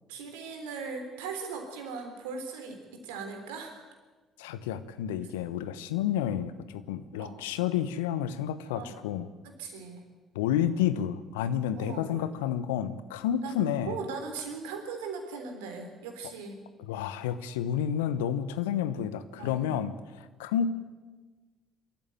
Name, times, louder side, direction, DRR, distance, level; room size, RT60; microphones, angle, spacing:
voice 1, 0.1-3.9 7.2-7.4 8.7-9.0 9.4-10.1 11.7-12.3 13.4-13.6 13.9-16.6 19.3-19.8, right 4 dB, 75° right, 5 dB, 3.6 m, -39 dB
voice 2, 4.4-9.3 10.3-13.9 16.9-19.9 20.4-20.7, left 9 dB, 75° left, 13 dB, 1.0 m, -30 dB
24.5 x 14.0 x 9.2 m, 1.3 s
figure-of-eight pair, 50°, 0 cm